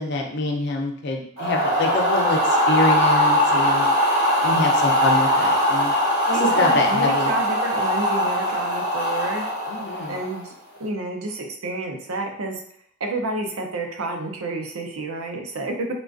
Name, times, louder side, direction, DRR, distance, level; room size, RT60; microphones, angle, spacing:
voice 1, 0.0-3.9 4.4-5.9 6.3-7.3 9.7-10.2, left 2 dB, 55° left, 2 dB, 0.5 m, -25 dB
sound 1, 1.4-10.5, equal, 65° right, 1.0 m, -21 dB
voice 2, 6.3-9.4 10.1-10.5 10.8-12.6 13.0-15.7, right 2 dB, 85° right, 2 dB, 0.6 m, -29 dB
3.7 x 2.4 x 2.5 m, 0.65 s
head